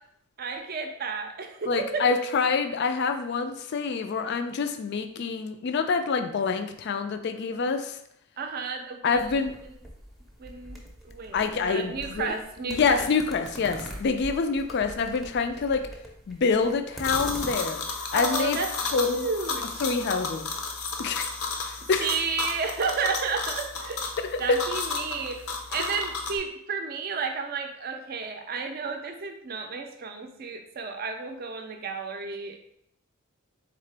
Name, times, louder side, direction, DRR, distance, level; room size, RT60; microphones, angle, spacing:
voice 1, 0.4-2.1 8.4-9.4 9.7-9.8 10.4-10.8 11.0-13.1 18.1-18.7 18.9-19.8 22.0-24.1 24.4-25.4 25.7-32.6, right 5 dB, 45° right, 5 dB, 0.5 m, -32 dB
voice 2, 1.7-8.0 9.0-9.5 11.3-12.3 12.7-15.8 16.3-17.8 18.1-18.6 18.9-19.3 19.8-20.5 21.0-21.3 21.6-22.1 24.5-24.6, left 4 dB, 50° left, 8 dB, 0.3 m, -26 dB
sound 1, 9.1-17.5, equal, ahead, 0.6 m, -42 dB
sound 2, 17.0-26.4, left 4 dB, 80° left, 0.7 m, -33 dB
3.9 x 3.6 x 3.3 m, 0.73 s
head